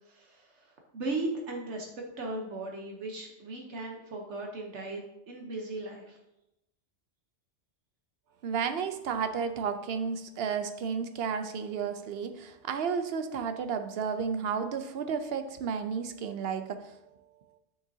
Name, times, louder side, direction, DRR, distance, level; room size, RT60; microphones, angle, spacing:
voice 1, 0.0-1.9 2.2-5.0 5.3-6.2, right 2 dB, 80° right, 1 dB, 1.3 m, -37 dB
voice 2, 8.4-17.0, right 6 dB, 65° right, 9 dB, 0.8 m, -32 dB
8.5 x 6.4 x 2.7 m, 0.89 s
omnidirectional pair, 1.2 m